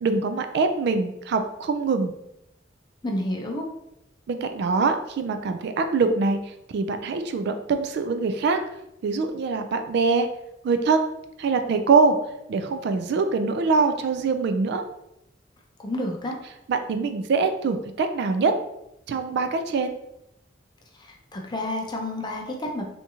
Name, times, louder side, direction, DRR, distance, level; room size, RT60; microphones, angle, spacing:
voice 1, 0.0-2.1 4.3-6.4 6.7-8.6 9.0-10.3 10.6-11.1 11.4-12.2 12.5-14.8 16.7-18.5 19.1-19.9, right 4 dB, 60° right, 8 dB, 0.3 m, -23 dB
voice 2, 3.0-3.6 15.8-16.3 21.0-22.8, left 1 dB, 25° left, 1 dB, 0.5 m, -30 dB
3.5 x 2.7 x 2.8 m, 0.82 s
head